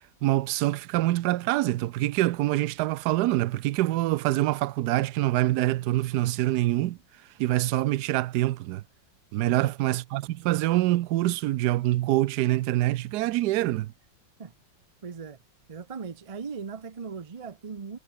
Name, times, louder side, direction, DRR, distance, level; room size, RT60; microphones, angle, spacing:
voice 1, 0.2-7.0 7.4-8.8 9.3-13.9, right 16 dB, 70° right, 1.0 m, -25 dB
voice 2, 9.4-9.8 13.6-13.8 14.4-14.5 15.0-15.4 15.7-18.0, right 5 dB, 45° right, 0.4 m, -39 dB
omnidirectional pair, 2.0 m